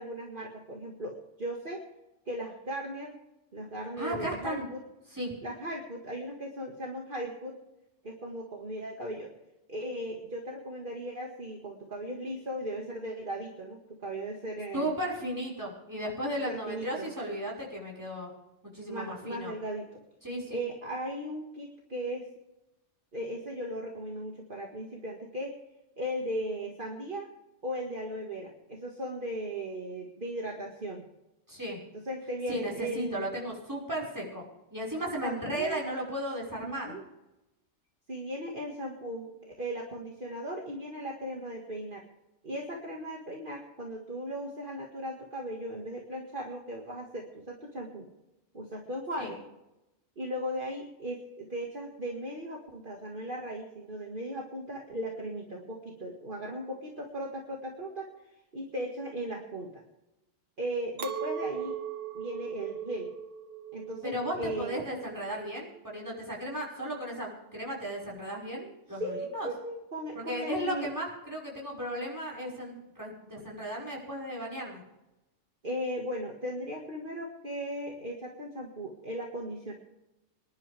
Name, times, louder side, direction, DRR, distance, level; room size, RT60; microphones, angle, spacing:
voice 1, 0.0-1.8 2.3-3.2 3.5-4.8 5.4-7.6 8.0-9.3 9.7-14.9 16.5-17.1 18.9-20.0 20.5-22.3 23.1-25.6 26.0-27.3 27.6-31.1 31.9-33.3 35.2-35.8 36.6-37.0 38.1-42.0 42.4-48.1 48.5-49.4 50.2-58.1 58.5-59.8 60.6-61.8 62.1-63.1 63.7-64.8 68.9-70.9 75.6-79.7, equal, 45° right, -1 dB, 2.2 m, -37 dB
voice 2, 4.0-4.7 5.1-5.3 14.7-18.3 18.7-19.5 20.2-20.6 31.5-31.8 32.5-34.4 34.7-36.9 49.2-49.3 64.0-69.5 70.1-74.8, equal, 15° right, -3 dB, 5.8 m, -35 dB
Chink clink, 61.0-66.4, right 7 dB, 75° right, 1.5 m, -39 dB
26.0 x 11.5 x 3.6 m, 0.94 s
omnidirectional pair, 1.3 m